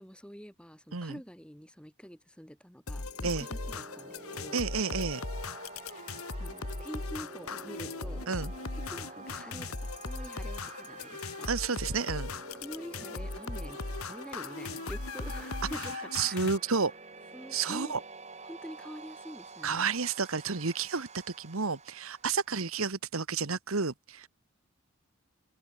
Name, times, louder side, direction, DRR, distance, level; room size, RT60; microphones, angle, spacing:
voice 1, 0.0-4.6 5.8-6.1 6.4-8.3 8.8-11.5 11.8-11.9 12.5-16.6 17.3-18.0 18.4-19.9, equal, 5° left, 5.4 m, -46 dB
sound 1, 2.9-16.6, left 3 dB, 80° left, 1.8 m, -38 dB
sound 2, 3.0-22.8, right 3 dB, 30° right, 5.1 m, -49 dB
voice 2, 4.5-5.2 8.3-8.5 11.4-12.3 16.1-16.9 17.5-18.0 19.6-21.1 21.4-24.3, right 5 dB, 75° right, 1.4 m, -31 dB
open air
head